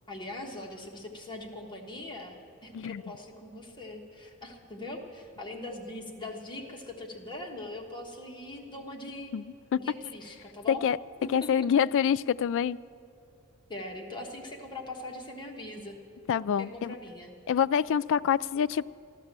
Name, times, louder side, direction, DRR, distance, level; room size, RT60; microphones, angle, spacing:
voice 1, 0.1-9.3 9.8-10.8 11.2-11.5 13.7-16.0 16.6-17.3, left 2 dB, 20° left, 0 dB, 1.4 m, -41 dB
voice 2, 11.3-12.8 16.3-16.9 17.5-18.8, left 8 dB, 60° left, 15 dB, 0.3 m, -26 dB
14.5 x 12.0 x 7.4 m, 2.5 s
head